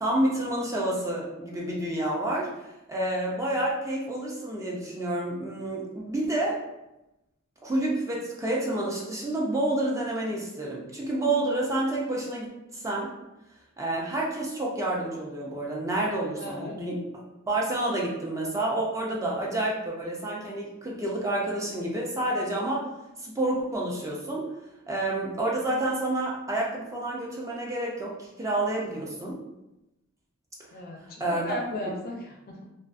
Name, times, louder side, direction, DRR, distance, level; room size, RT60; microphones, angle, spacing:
voice 1, 0.0-6.6 7.6-12.5 12.7-13.1 13.8-17.0 17.5-22.9 23.2-24.6 24.9-29.4 31.2-31.5 31.9-32.0, right 1 dB, 15° right, -3 dB, 0.4 m, -29 dB
voice 2, 16.4-16.8 30.7-32.6, left 1 dB, 45° left, 0 dB, 0.5 m, -36 dB
2.4 x 2.3 x 2.4 m, 0.93 s
head